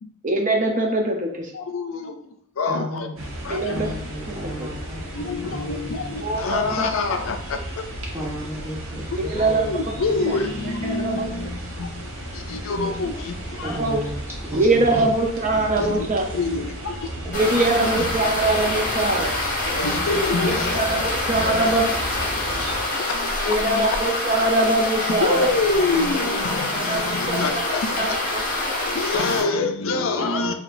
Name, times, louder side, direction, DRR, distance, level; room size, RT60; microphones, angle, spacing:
voice 1, 0.2-1.5 3.5-3.9 4.3-4.7 6.2-6.9 9.3-9.7 10.3-10.4 10.8-11.3 13.6-14.0 14.5-16.2 17.3-19.3 20.4-21.8 22.2-22.3 23.5-25.5 26.7-28.4 28.8-28.9, right 2 dB, 40° right, 2 dB, 0.6 m, -23 dB
voice 2, 1.5-3.1 3.4-3.8 4.7-7.8 9.2-13.8 15.8-16.1 16.3-17.4 17.8-18.1 19.7-21.7 22.4-23.9 25.1-28.2 28.9-30.5, left 3 dB, 75° left, 7 dB, 0.4 m, -27 dB
voice 3, 2.7-6.7 8.1-10.4 13.6-14.1 14.4-15.0 15.5-15.8, equal, 10° right, -7 dB, 1.2 m, -35 dB
sound 1, 3.2-22.8, right 1 dB, 80° right, 0.9 m, -34 dB
sound 2, 17.3-29.4, left 2 dB, 40° left, 1.2 m, -26 dB
5.0 x 2.7 x 2.5 m, 0.68 s
head